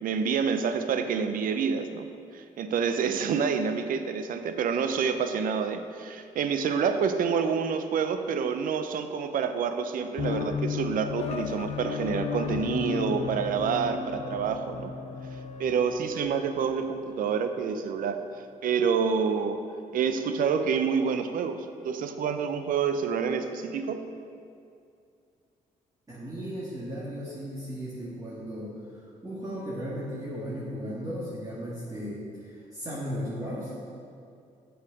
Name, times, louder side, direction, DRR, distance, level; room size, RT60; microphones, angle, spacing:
voice 1, 0.0-14.9 15.6-18.2 18.6-19.6 19.9-24.1, right 6 dB, 70° right, 9 dB, 0.5 m, -28 dB
sound 1, 10.2-17.5, left 6 dB, 45° left, 0.5 m, -34 dB
voice 2, 26.1-33.7, equal, 25° right, -9 dB, 1.8 m, -36 dB
6.9 x 4.8 x 5.0 m, 2.5 s
supercardioid pair, 65°, 15 cm